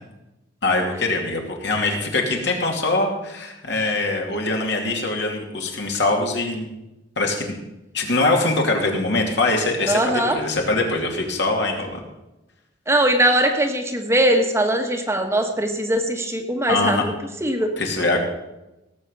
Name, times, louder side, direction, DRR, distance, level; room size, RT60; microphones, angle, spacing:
voice 1, 0.6-6.7 7.2-7.5 7.9-12.0 16.7-17.0 17.8-18.2, left 2 dB, 65° left, 1 dB, 2.7 m, -23 dB
voice 2, 9.9-10.4 12.9-17.1 17.4-17.7, right 1 dB, 15° right, 4 dB, 1.3 m, -20 dB
17.5 x 7.4 x 6.5 m, 0.96 s
head